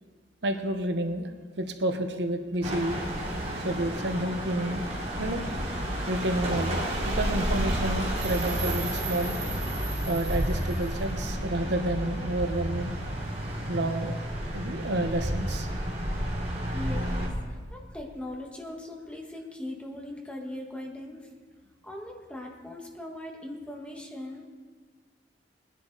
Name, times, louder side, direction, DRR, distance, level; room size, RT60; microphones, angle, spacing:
voice 1, 0.4-1.3 1.6-3.0 3.6-4.8 5.2-5.4 6.1-6.8 7.1-9.3 10.1-12.9 13.7-14.2 14.5-15.7, right 1 dB, 70° right, 6 dB, 1.0 m, -30 dB
sound 1, 2.6-17.3, right 1 dB, 35° right, 2.7 m, -31 dB
sound 2, 5.2-13.2, equal, 80° left, 1.3 m, -37 dB
voice 2, 16.7-21.3 21.8-24.4, left 1 dB, 5° left, -1 dB, 1.6 m, -40 dB
20.0 x 10.5 x 4.1 m, 1.5 s
head